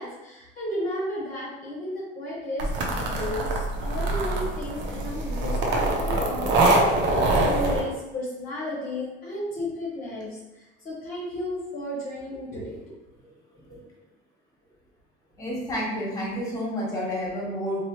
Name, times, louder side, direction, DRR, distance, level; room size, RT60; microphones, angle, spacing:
voice 1, 0.0-2.7 3.2-6.5 7.1-10.3 10.8-12.7, left 1 dB, 45° left, -6 dB, 0.8 m, -33 dB
sound 1, 2.6-7.8, right 2 dB, 65° right, 0.6 m, -24 dB
voice 2, 15.4-17.8, equal, 15° left, -5 dB, 1.2 m, -30 dB
3.0 x 2.0 x 2.9 m, 1.1 s
cardioid pair, 105°, 20 cm